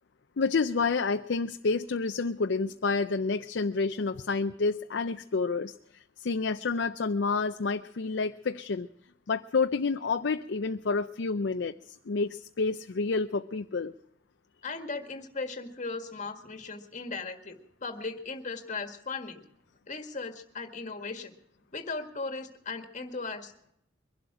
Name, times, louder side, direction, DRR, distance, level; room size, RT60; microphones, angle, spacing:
voice 1, 0.4-8.9 9.3-13.9, left 4 dB, 70° left, 8 dB, 0.5 m, -29 dB
voice 2, 14.6-19.4 19.9-21.3 21.7-23.5, left 3 dB, 40° left, 6 dB, 1.7 m, -37 dB
23.0 x 12.0 x 4.9 m, 0.73 s
head